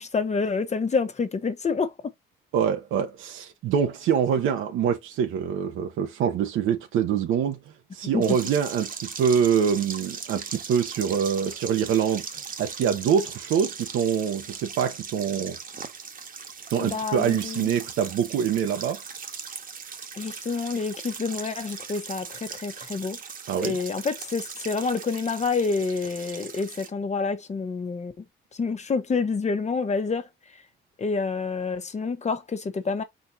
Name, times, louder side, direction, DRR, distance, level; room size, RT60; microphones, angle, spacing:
voice 1, 0.0-1.9 8.1-8.2 16.8-17.7 20.2-23.2 23.6-28.1 28.6-30.3 31.0-33.0, left 4 dB, 35° left, 1.0 m, -28 dB
voice 2, 2.5-7.6 7.9-8.9 9.2-12.3 12.6-15.6 16.7-19.0 23.5-23.8, right 8 dB, 85° right, 1.0 m, -25 dB
sound 1, 8.2-26.9, right 6 dB, 45° right, 1.3 m, -39 dB
4.4 x 4.3 x 2.7 m
cardioid pair, 90°, 20 cm